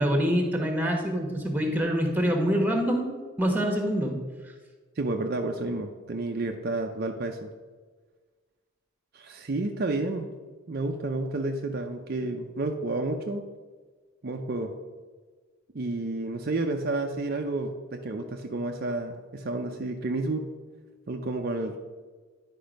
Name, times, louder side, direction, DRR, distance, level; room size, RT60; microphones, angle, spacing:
voice 1, 0.0-4.2, equal, 10° right, 3 dB, 1.1 m, -25 dB
voice 2, 5.0-7.5 9.1-10.3 10.7-13.5 14.2-14.7 15.7-20.5 21.1-21.8, right 2 dB, 45° right, 4 dB, 0.5 m, -30 dB
10.5 x 5.3 x 5.2 m, 1.4 s
head